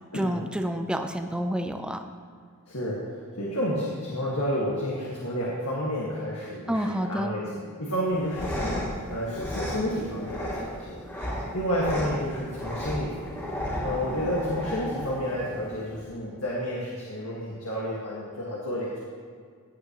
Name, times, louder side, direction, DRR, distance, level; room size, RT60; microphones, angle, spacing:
voice 1, 0.1-2.0 6.7-7.4, equal, 5° right, 6 dB, 0.6 m, -29 dB
voice 2, 2.7-11.0 11.5-13.6 13.8-19.0, equal, 70° left, -5 dB, 1.8 m, -30 dB
sound 1, 8.1-16.1, equal, 10° left, 2.6 m, -34 dB
16.5 x 8.4 x 3.1 m, 2.1 s
head